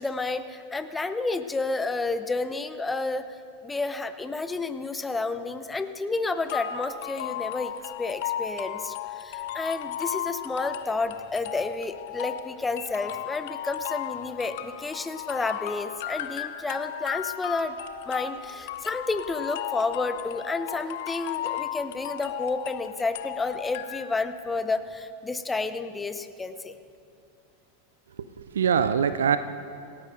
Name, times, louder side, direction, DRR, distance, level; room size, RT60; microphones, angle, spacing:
voice 1, 0.0-3.2 3.6-7.7 8.0-17.8 18.0-26.8, left 3 dB, 10° left, 11 dB, 0.6 m, -30 dB
sound 1, 6.5-24.4, left 11 dB, 50° left, 0.6 m, -35 dB
voice 2, 28.2-29.4, right 7 dB, 65° right, 12 dB, 0.4 m, -23 dB
27.5 x 13.5 x 2.6 m, 2.5 s
figure-of-eight pair, 90°, 0 cm